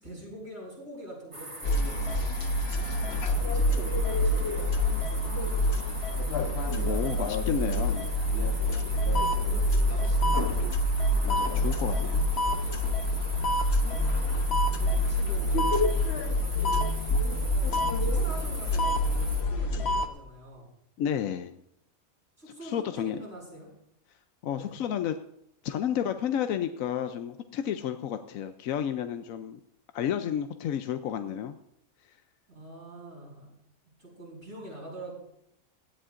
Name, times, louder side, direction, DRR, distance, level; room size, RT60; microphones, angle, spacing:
voice 1, 0.0-2.1 3.1-5.9 8.7-10.7 13.2-13.4 14.5-20.7 22.4-23.7 24.6-24.7 32.5-33.5 34.0-35.1, equal, 55° right, -4 dB, 6.6 m, -45 dB
sound 1, 1.3-19.4, right 1 dB, 20° right, 1.9 m, -42 dB
sound 2, 1.6-20.1, left 1 dB, 50° left, 1.1 m, -26 dB
voice 2, 6.8-8.1 11.2-12.2 12.6-12.8 21.0-21.5 22.6-23.2 24.4-25.2 25.6-29.6 29.9-31.5, left 9 dB, 75° left, 8 dB, 1.0 m, -31 dB
17.5 x 12.5 x 2.5 m, 0.78 s
omnidirectional pair, 1.5 m